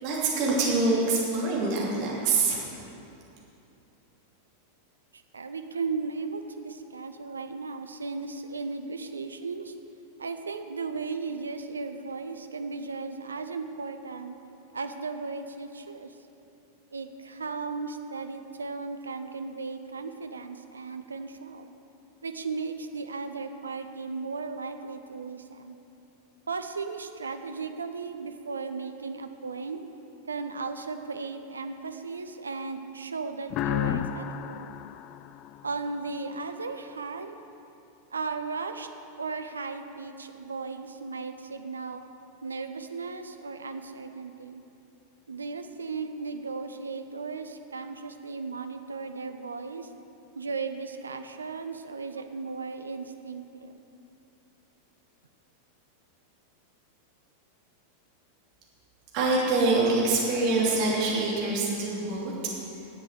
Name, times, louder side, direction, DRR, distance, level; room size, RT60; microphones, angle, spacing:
voice 1, 0.0-2.8 59.1-62.3, right 3 dB, 45° right, -4 dB, 2.9 m, -25 dB
voice 2, 5.1-9.7 10.2-14.4 14.7-16.2 16.9-21.7 22.2-25.8 26.5-29.8 30.3-34.7 35.6-37.4 38.1-38.9 39.2-42.0 42.4-44.6 45.3-49.9 50.3-53.8, right 4 dB, 75° right, 7 dB, 0.6 m, -36 dB
sound 1, 33.5-36.2, left 11 dB, 35° left, 0.3 m, -32 dB
10.5 x 7.8 x 6.4 m, 2.8 s
figure-of-eight pair, 90°, 0 cm